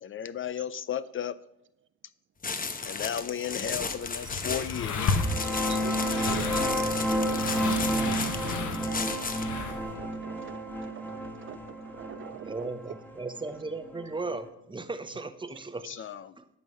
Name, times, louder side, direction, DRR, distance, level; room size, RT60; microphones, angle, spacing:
voice 1, 0.0-1.4 2.8-5.2 15.9-16.3, left 9 dB, 45° left, 16 dB, 0.4 m, -34 dB
sound 1, 2.4-9.6, left 4 dB, 30° left, 0.9 m, -35 dB
sound 2, 3.6-9.9, left 4 dB, 75° left, 1.3 m, -34 dB
sound 3, 5.0-14.3, right 1 dB, 5° left, 1.5 m, -31 dB
voice 2, 5.5-6.4 10.0-12.7, right 10 dB, 45° right, 14 dB, 0.4 m, -44 dB
voice 3, 12.3-15.9 16.4-16.5, right 3 dB, 15° right, 11 dB, 0.8 m, -37 dB
11.0 x 6.3 x 5.4 m, 0.85 s
cardioid pair, 90°, 30 cm